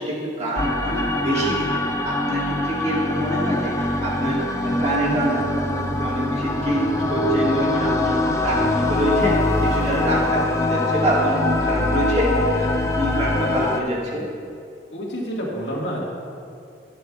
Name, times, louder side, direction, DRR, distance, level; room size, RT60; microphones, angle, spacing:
voice 1, 0.0-14.2, right 1 dB, 40° right, -4 dB, 1.9 m, -25 dB
sound 1, 0.6-13.8, left 2 dB, 15° left, 0.4 m, -23 dB
voice 2, 4.9-5.5 14.9-16.0, equal, 85° left, -4 dB, 2.0 m, -30 dB
13.0 x 9.0 x 2.5 m, 2.4 s
head